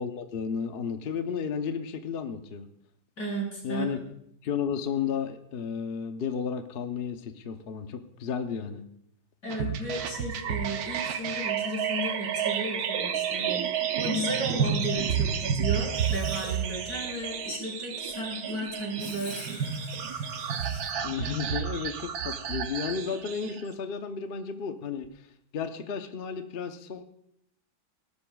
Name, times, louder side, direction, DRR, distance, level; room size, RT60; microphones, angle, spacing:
voice 1, 0.0-2.7 3.6-4.0 4.4-8.9 21.0-25.1 25.5-27.0, left 6 dB, 70° left, 7 dB, 0.5 m, -33 dB
voice 2, 3.2-3.9 9.4-19.6, right 1 dB, 50° left, -2 dB, 4.6 m, -34 dB
sound 1, 9.5-23.6, right 7 dB, 60° right, 1.1 m, -31 dB
Writing, 15.9-16.7 19.0-20.9, left 2 dB, 25° left, 1.6 m, -47 dB
18.5 x 12.0 x 2.3 m, 0.75 s
omnidirectional pair, 2.1 m